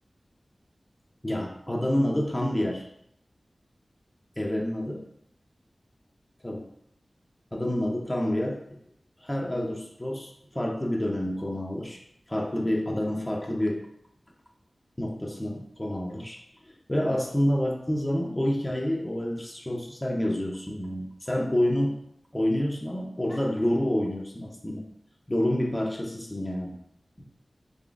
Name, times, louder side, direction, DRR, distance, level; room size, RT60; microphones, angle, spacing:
voice 1, 1.2-2.9 4.4-5.0 6.4-6.7 7.5-8.6 9.2-12.0 12.3-13.8 15.0-16.4 16.9-22.0 22.3-24.8 25.3-26.8, left 1 dB, 20° left, 0 dB, 0.5 m, -28 dB
3.8 x 3.1 x 2.3 m, 0.73 s
wide cardioid pair, 65°, 0 cm